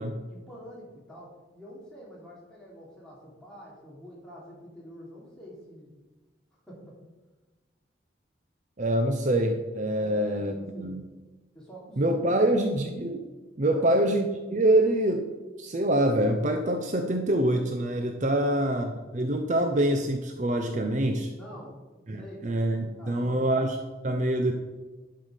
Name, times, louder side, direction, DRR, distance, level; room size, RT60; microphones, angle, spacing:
voice 1, 0.3-5.9 6.7-7.0 9.9-11.0 11.5-12.4 13.6-13.9 18.3-18.7 21.3-21.8 22.2-22.5 23.0-23.5, equal, 5° left, -6 dB, 2.9 m, -46 dB
voice 2, 8.8-11.0 12.0-13.3 13.6-14.3 14.5-21.3 22.1-24.5, right 1 dB, 40° right, 5 dB, 0.6 m, -25 dB
11.5 x 5.7 x 5.0 m, 1.2 s
head